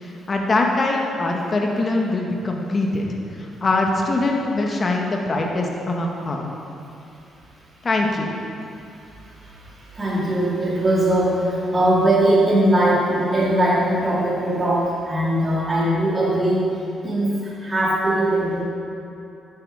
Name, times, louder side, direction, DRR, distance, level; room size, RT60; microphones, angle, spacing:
voice 1, 0.0-3.1 3.6-6.5 7.8-8.3, left 2 dB, 35° left, 0 dB, 1.7 m, -22 dB
voice 2, 9.2-18.6, right 1 dB, 25° right, -6 dB, 2.8 m, -20 dB
11.0 x 8.8 x 5.0 m, 2.7 s
cardioid pair, 90°, 0 cm